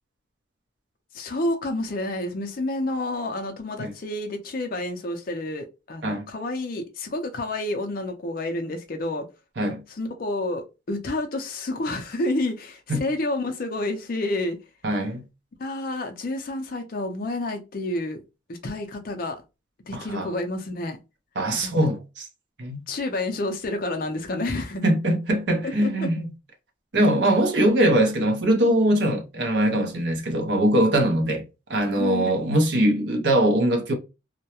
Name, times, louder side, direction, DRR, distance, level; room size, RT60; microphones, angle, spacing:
voice 1, 1.1-9.3 9.9-14.6 15.6-18.2 18.5-19.4 19.9-21.0 21.5-21.7 22.9-24.9 25.6-26.1 32.0-32.3, left 2 dB, 45° left, 0.4 m, -29 dB
voice 2, 14.8-15.2 19.9-20.3 21.4-22.0 22.6-22.8 24.8-26.3 26.9-31.4 31.7-33.9, right 1 dB, 60° right, 0.6 m, -22 dB
2.3 x 2.1 x 2.8 m
head